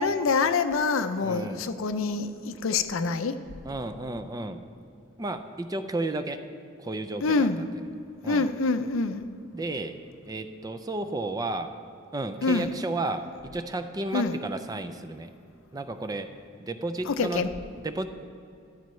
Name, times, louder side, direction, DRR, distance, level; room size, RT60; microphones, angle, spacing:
voice 1, 0.0-3.4 7.2-7.7 8.3-9.3 12.4-12.7 14.1-14.4 17.1-17.5, left 4 dB, 65° left, 10 dB, 0.5 m, -26 dB
voice 2, 1.2-1.7 3.6-4.6 5.2-6.5 6.8-7.8 8.2-8.5 9.5-10.0 10.3-11.7 12.1-15.3 15.7-17.4 17.8-18.1, right 2 dB, 15° right, 9 dB, 0.4 m, -33 dB
13.5 x 12.0 x 3.2 m, 2.6 s
head